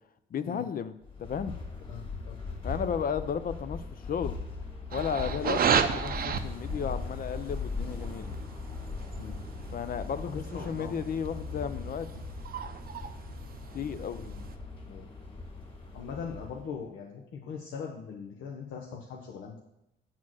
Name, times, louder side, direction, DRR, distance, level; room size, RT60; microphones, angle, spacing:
voice 1, 0.3-0.9 1.2-1.5 2.6-4.4 4.9-8.3 9.7-12.3 13.7-14.2, left 7 dB, 45° left, 12 dB, 0.5 m, -34 dB
sound 1, 1.0-16.8, left 4 dB, 25° left, 2.1 m, -39 dB
voice 2, 1.9-2.4 9.2-9.4 10.3-11.0 14.2-14.5 14.9-15.1 15.9-19.6, left 6 dB, 75° left, 0 dB, 0.8 m, -41 dB
sound 2, 4.9-14.6, right 7 dB, 50° right, 0.6 m, -34 dB
7.3 x 4.4 x 6.2 m, 0.84 s
cardioid pair, 90°, 20 cm